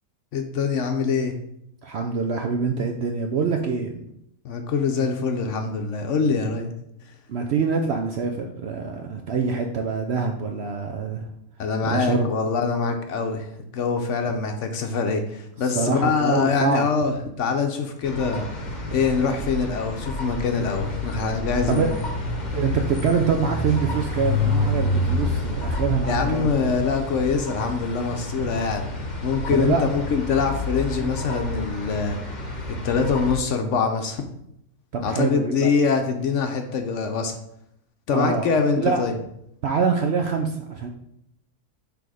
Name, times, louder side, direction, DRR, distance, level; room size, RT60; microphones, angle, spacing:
voice 1, 0.3-1.4 4.4-6.7 11.6-13.5 13.7-18.5 18.9-21.9 26.1-28.9 29.2-32.2 32.8-34.2 35.0-37.4 38.1-39.1, left 5 dB, 65° left, 5 dB, 0.9 m, -24 dB
voice 2, 1.8-4.0 7.3-11.3 11.8-12.3 15.6-16.9 21.7-21.9 22.5-26.8 29.5-29.9 34.9-35.7 38.1-38.5 38.8-39.0 39.6-40.9, right 5 dB, 65° right, 3 dB, 0.7 m, -25 dB
sound 1, 18.0-33.4, left 2 dB, 35° left, 1.0 m, -29 dB
6.1 x 3.4 x 4.8 m, 0.76 s
omnidirectional pair, 1.6 m